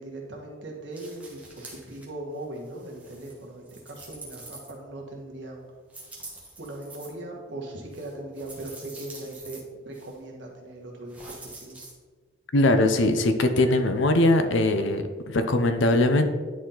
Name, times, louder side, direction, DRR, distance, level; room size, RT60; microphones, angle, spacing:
voice 1, 0.0-5.6 6.6-11.8, right 1 dB, 60° right, -1 dB, 1.5 m, -39 dB
sound 1, 0.9-2.1 2.4-5.1 5.9-7.1 7.9-9.6 9.9-10.2 11.1-11.9, right 2 dB, 5° right, 1.3 m, -46 dB
voice 2, 12.5-16.3, left 2 dB, 65° left, 8 dB, 0.6 m, -21 dB
10.0 x 4.3 x 3.9 m, 1.5 s
head